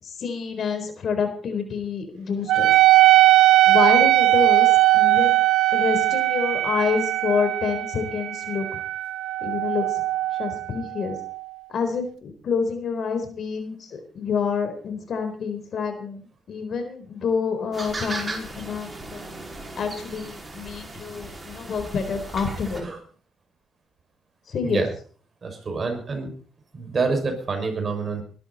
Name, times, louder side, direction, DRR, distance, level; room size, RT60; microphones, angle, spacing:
voice 1, 0.0-2.8 3.7-5.4 5.7-8.8 9.4-10.0 10.4-11.2 11.7-19.2 19.8-22.9 24.5-24.8, left 5 dB, 55° left, 7 dB, 4.0 m, -28 dB
Wind instrument woodwind instrument, 2.5-11.4, right 16 dB, 80° right, 0.6 m, -19 dB
sound 1, 17.7-22.8, right 2 dB, 20° right, 5.1 m, -36 dB
voice 2, 25.4-26.3 26.7-28.2, right 4 dB, 40° right, 4 dB, 6.0 m, -27 dB
21.0 x 12.0 x 4.2 m, 0.42 s
cardioid pair, 90°, 0 cm